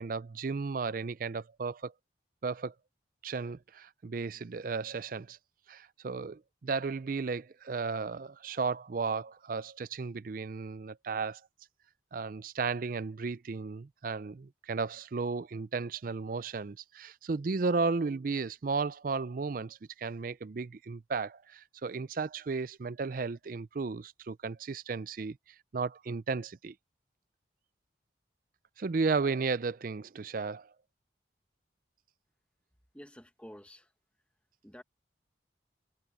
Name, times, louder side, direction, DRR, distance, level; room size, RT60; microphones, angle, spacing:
voice 1, 0.0-1.9 2.4-2.7 3.2-5.4 5.7-11.4 12.1-25.4 25.7-26.7 28.8-30.7, right 4 dB, 45° right, 0.4 m, -34 dB
voice 2, 32.9-33.9 34.6-34.8, equal, 5° left, 1.5 m, -50 dB
head